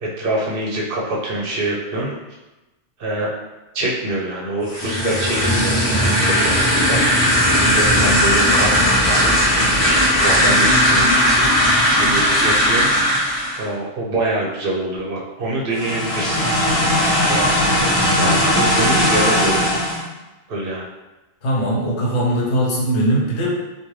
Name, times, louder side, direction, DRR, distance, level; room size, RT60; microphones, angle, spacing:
voice 1, 0.0-2.1 3.0-3.3 3.7-7.0 7.5-8.8 9.0-11.5 12.0-12.9 13.6-16.5 17.0-17.5 18.1-19.7 20.5-20.9, right 2 dB, 60° right, -3 dB, 0.7 m, -25 dB
sound 1, 4.6-13.6 15.7-20.0, equal, 35° left, 0.8 m, -17 dB
voice 2, 21.4-23.5, right 1 dB, 75° left, -4 dB, 1.0 m, -20 dB
2.4 x 2.3 x 3.0 m, 1.1 s
omnidirectional pair, 1.2 m